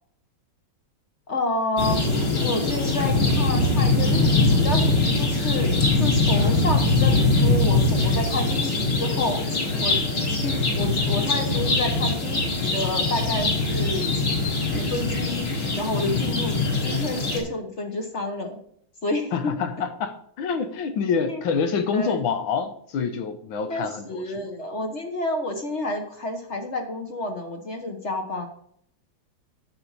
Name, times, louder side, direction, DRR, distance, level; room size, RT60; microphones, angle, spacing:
voice 1, 1.3-2.0 2.4-5.7 6.0-9.4 9.8-10.0 10.4-14.2 14.7-16.6 16.8-18.6 19.0-19.5 21.2-21.4 21.9-22.2 23.7-28.5, left 2 dB, 40° left, 1.2 m, -29 dB
sound 1, 1.8-17.4, left 2 dB, 55° left, 2.9 m, -22 dB
voice 2, 19.3-24.5, left 6 dB, 75° left, 1.6 m, -27 dB
10.0 x 7.7 x 4.0 m
omnidirectional pair, 2.3 m